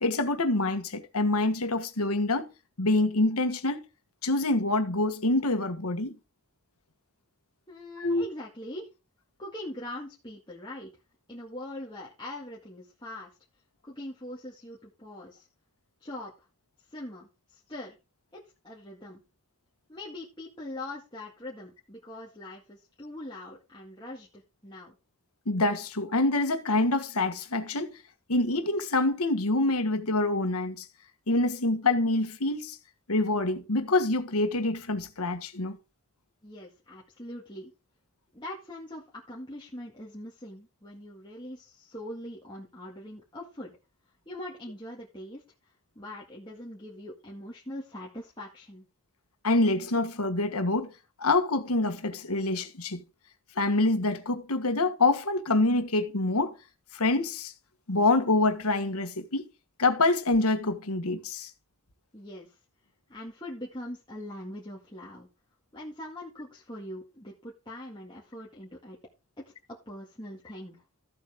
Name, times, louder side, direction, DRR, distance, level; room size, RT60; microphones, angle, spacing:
voice 1, 0.0-2.5 2.8-3.8 4.2-6.1 8.0-8.2 25.5-28.0 28.3-30.8 31.3-32.8 33.1-35.8 49.4-50.9 51.2-53.0 53.6-56.5 56.9-57.5 57.9-59.4 59.8-61.5, left 2 dB, 85° left, 1.5 m, -26 dB
voice 2, 7.7-8.9 9.4-10.9 11.3-13.3 13.8-15.5 16.0-16.5 16.9-18.0 18.3-19.2 19.9-25.0 36.4-37.7 38.3-43.7 44.3-48.9 62.1-62.6 63.1-65.3 65.7-69.0 69.4-69.5 69.9-70.8, left 1 dB, 20° left, 2.0 m, -42 dB
14.0 x 8.1 x 3.6 m
head